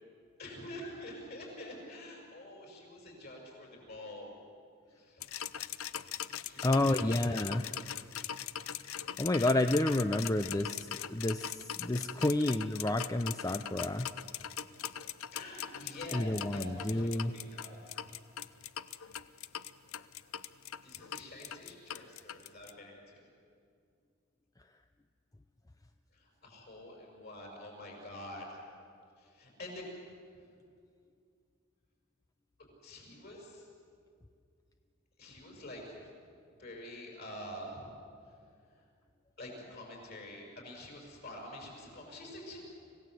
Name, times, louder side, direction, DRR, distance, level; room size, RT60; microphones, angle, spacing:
voice 1, 0.4-4.4 4.9-5.2 6.4-7.6 15.3-17.8 20.4-20.6 20.8-23.3 26.1-28.7 29.2-29.9 30.4-30.5 32.8-33.7 35.2-36.1 36.6-38.0 38.3-38.4 38.7-38.8 39.4-42.6, left 1 dB, 45° left, 0 dB, 6.1 m, -47 dB
sound 1, 5.2-22.7, left 10 dB, 75° left, 0.6 m, -41 dB
voice 2, 6.6-7.6 9.2-14.1 16.1-17.3, left 1 dB, 15° left, 8 dB, 0.5 m, -30 dB
26.0 x 16.5 x 7.8 m, 2.3 s
head